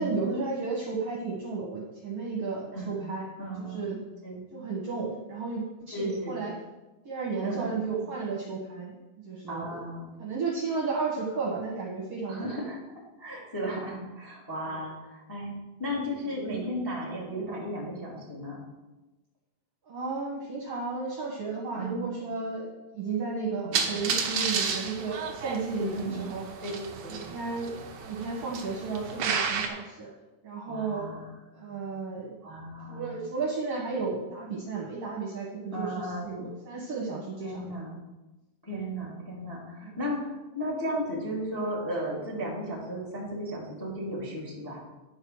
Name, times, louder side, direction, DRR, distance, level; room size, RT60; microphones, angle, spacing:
voice 1, 0.0-3.3 3.7-4.0 4.5-6.5 7.1-9.0 9.2-9.8 10.2-12.5 14.7-14.8 19.9-26.4 27.1-30.1 30.4-31.1 31.5-32.4 32.9-37.8 39.8-39.9, right 4 dB, 55° right, -3 dB, 1.9 m, -33 dB
voice 2, 2.7-3.0 3.4-3.9 4.2-4.4 5.9-6.4 7.4-7.8 9.5-10.1 12.3-12.8 13.2-15.5 15.8-18.6 21.7-22.0 23.6-23.8 25.8-26.3 26.6-26.7 27.0-27.2 30.7-31.3 31.7-31.9 32.4-33.1 35.7-36.3 37.4-38.0 38.6-44.8, equal, 5° left, -3 dB, 1.8 m, -35 dB
sound 1, 23.7-29.7, right 6 dB, 85° right, 1.3 m, -32 dB
10.5 x 5.5 x 6.4 m, 1.1 s
omnidirectional pair, 4.3 m